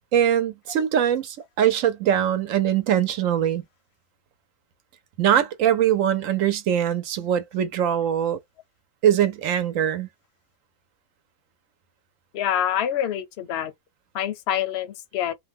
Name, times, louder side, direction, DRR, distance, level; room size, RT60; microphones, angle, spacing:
voice 1, 0.1-3.6 5.2-8.4 9.0-10.1, right 10 dB, 70° right, 1.0 m, -22 dB
voice 2, 12.3-13.7 14.1-15.3, left 10 dB, 60° left, 0.8 m, -26 dB
2.5 x 2.2 x 3.4 m
omnidirectional pair, 1.5 m